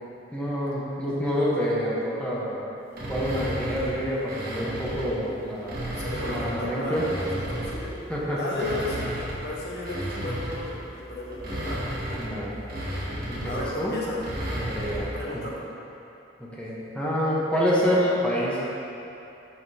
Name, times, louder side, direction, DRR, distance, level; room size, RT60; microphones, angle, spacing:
voice 1, 0.3-2.6 3.1-7.0 8.1-8.7 12.2-12.6 13.3-14.0 14.6-15.4 16.4-18.6, equal, 5° left, -7 dB, 1.0 m, -27 dB
sound 1, 2.9-5.2 5.6-8.0 8.4-15.2, equal, 55° right, 1.3 m, -33 dB
voice 2, 5.9-7.9 8.4-11.8 13.4-14.2 15.1-15.6, left 1 dB, 60° left, -5 dB, 1.2 m, -34 dB
7.6 x 5.9 x 2.8 m, 2.8 s
head